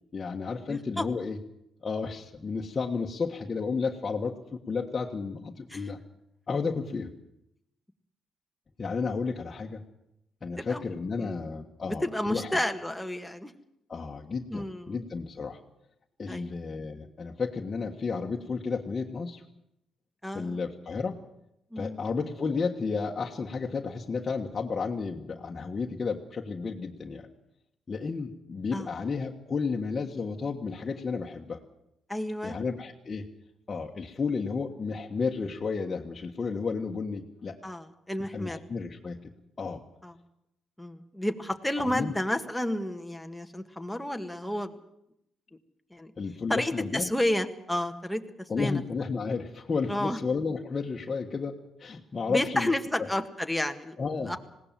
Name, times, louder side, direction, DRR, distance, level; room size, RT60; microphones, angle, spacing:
voice 1, 0.1-1.4 1.8-6.0 6.5-7.1 8.8-9.8 10.4-12.5 13.9-15.6 16.2-19.4 20.3-21.2 21.7-27.3 27.9-31.6 32.4-33.2 33.7-37.6 38.3-39.2 39.6-39.8 41.8-42.1 46.2-47.1 48.5-53.1 54.0-54.3, left 4 dB, 35° left, -1 dB, 1.6 m, -32 dB
voice 2, 0.7-1.1 5.7-5.8 10.6-10.8 11.2-11.4 11.9-13.5 14.5-15.0 16.3-16.5 20.2-20.6 21.7-22.0 28.7-28.9 32.1-32.6 37.6-38.6 40.0-40.1 40.8-44.7 45.9-46.1 46.5-48.8 49.9-50.2 52.3-54.0 54.3-54.4, left 1 dB, 5° left, 5 dB, 1.8 m, -31 dB
20.0 x 17.5 x 7.7 m, 0.80 s
cardioid pair, 90°, 0 cm